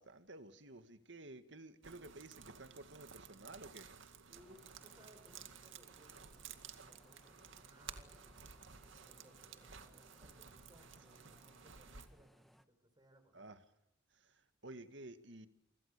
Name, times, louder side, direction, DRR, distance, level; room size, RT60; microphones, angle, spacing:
voice 1, 0.0-3.9 13.3-13.6 14.1-15.5, right 2 dB, 65° right, 2.1 m, -53 dB
sound 1, 1.8-12.1, right 7 dB, 85° right, 2.2 m, -55 dB
sound 2, 4.3-12.6, equal, ahead, 1.4 m, -67 dB
voice 2, 4.3-8.5 9.0-13.4, equal, 20° right, 6.6 m, -66 dB
28.5 x 25.0 x 6.9 m
head